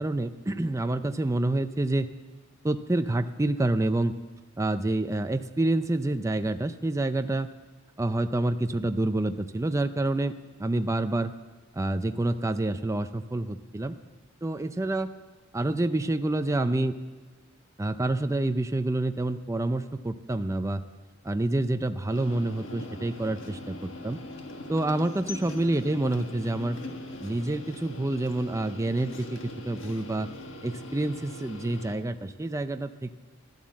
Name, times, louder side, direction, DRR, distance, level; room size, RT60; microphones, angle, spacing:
voice 1, 0.0-2.1 2.6-4.1 4.6-7.5 8.0-11.3 11.7-14.0 14.4-15.1 15.5-17.0 17.8-20.8 21.2-24.2 24.7-26.8 27.2-29.4 29.6-30.3 30.6-33.1, right 2 dB, 15° right, 9 dB, 0.5 m, -28 dB
sound 1, 22.1-32.0, left 1 dB, 65° left, 1.6 m, -41 dB
14.5 x 12.0 x 7.5 m, 1.3 s
head